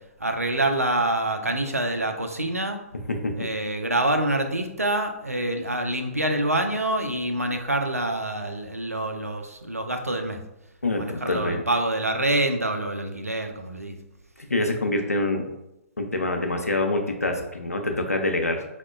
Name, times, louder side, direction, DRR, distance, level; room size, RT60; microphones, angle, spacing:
voice 1, 0.2-2.8 3.4-10.4 11.0-14.0, right 1 dB, 90° right, 5 dB, 0.4 m, -26 dB
voice 2, 10.8-11.6 14.5-15.5 16.0-18.6, left 2 dB, 85° left, 4 dB, 0.5 m, -25 dB
4.6 x 2.1 x 2.3 m, 0.91 s
figure-of-eight pair, 125°, 8 cm